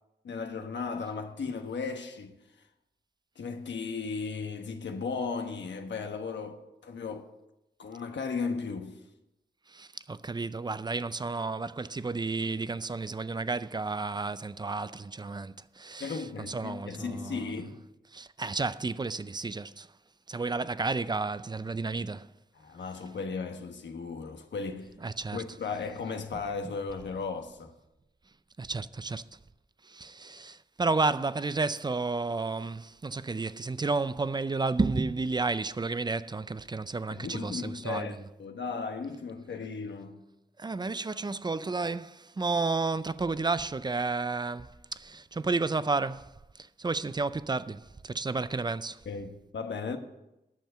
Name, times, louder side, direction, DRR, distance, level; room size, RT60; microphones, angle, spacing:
voice 1, 0.2-2.4 3.4-7.3 7.8-9.0 16.0-17.8 22.5-24.9 25.3-27.7 37.1-40.2 49.0-50.0, left 5 dB, 90° left, 1.2 m, -36 dB
voice 2, 9.7-17.5 18.1-19.9 20.3-22.3 25.0-25.4 28.6-29.2 29.8-38.2 40.6-49.0, right 3 dB, 25° right, 0.4 m, -32 dB
9.3 x 6.8 x 7.8 m
wide cardioid pair, 95°, 18 cm